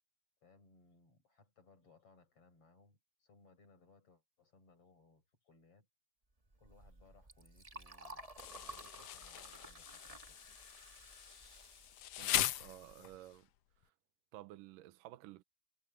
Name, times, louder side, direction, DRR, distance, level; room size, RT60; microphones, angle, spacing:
voice 1, 0.4-5.9 6.6-10.4 13.0-13.3, left 4 dB, 45° left, 6.2 m, -67 dB
Liquid, 6.5-13.1, right 2 dB, 40° right, 0.4 m, -54 dB
Insect, 8.4-13.3, left 13 dB, 80° left, 1.4 m, -40 dB
voice 2, 12.2-13.5 13.8-13.9 14.3-15.4, right 16 dB, 85° right, 2.4 m, -53 dB
omnidirectional pair, 3.9 m